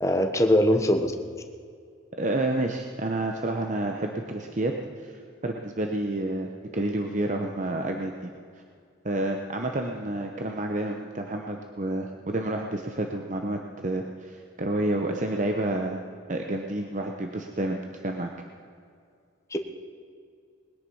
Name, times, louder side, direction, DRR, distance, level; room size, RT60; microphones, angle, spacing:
voice 1, 0.0-1.1 19.5-19.6, left 1 dB, 15° left, 5 dB, 1.0 m, -21 dB
voice 2, 2.2-4.7 5.0-5.2 5.4-8.3 9.0-16.0 16.3-18.3, right 1 dB, 40° right, 3 dB, 0.9 m, -29 dB
20.5 x 10.5 x 5.5 m, 2.2 s
head